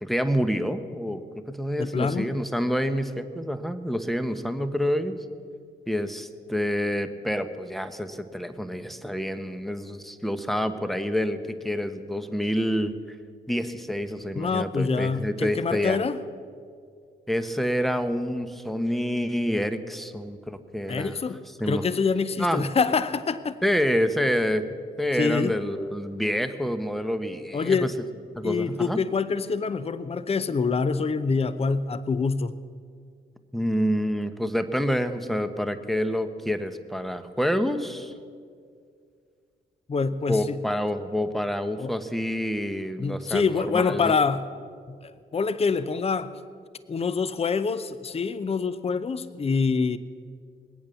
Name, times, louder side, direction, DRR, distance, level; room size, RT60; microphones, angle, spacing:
voice 1, 0.0-1.2 1.5-5.2 5.9-12.9 13.5-16.0 17.3-21.2 21.6-21.8 22.4-22.7 23.6-24.7 25.0-27.9 28.4-29.0 33.5-38.1 40.3-44.1, equal, ahead, 10 dB, 1.1 m, -27 dB
voice 2, 1.8-2.3 14.3-16.2 20.9-23.6 25.2-25.6 27.5-27.9 28.4-32.6 39.9-40.6 41.8-41.9 43.0-44.4 44.9-46.3 46.9-50.0, left 5 dB, 30° left, 15 dB, 0.7 m, -26 dB
21.5 x 8.7 x 7.0 m, 2.2 s
supercardioid pair, 60°, 19 cm